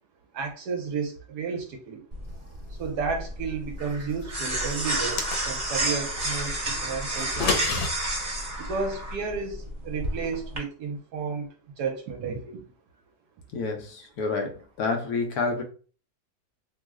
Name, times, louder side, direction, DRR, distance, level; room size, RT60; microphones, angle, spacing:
voice 1, 0.3-2.0 2.7-7.9 8.6-11.5 11.8-12.6, right 5 dB, 75° right, 1.1 m, -32 dB
sound 1, 2.1-10.6, right 1 dB, 40° right, 0.9 m, -31 dB
sound 2, 4.9-5.8 7.2-7.9, left 4 dB, 85° left, 1.3 m, -28 dB
voice 2, 13.5-15.6, left 4 dB, 70° left, 1.0 m, -29 dB
3.0 x 2.0 x 3.5 m
omnidirectional pair, 1.8 m